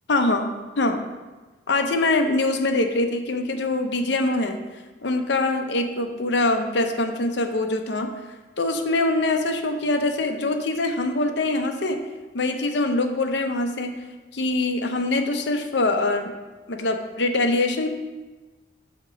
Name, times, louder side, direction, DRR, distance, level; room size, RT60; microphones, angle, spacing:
voice 1, 0.1-0.5 0.8-1.0 1.7-4.6 5.0-8.1 8.6-12.0 12.3-14.0 14.3-16.3 16.7-17.9, left 2 dB, 70° left, 5 dB, 0.7 m, -23 dB
7.8 x 3.0 x 6.1 m, 1.2 s
head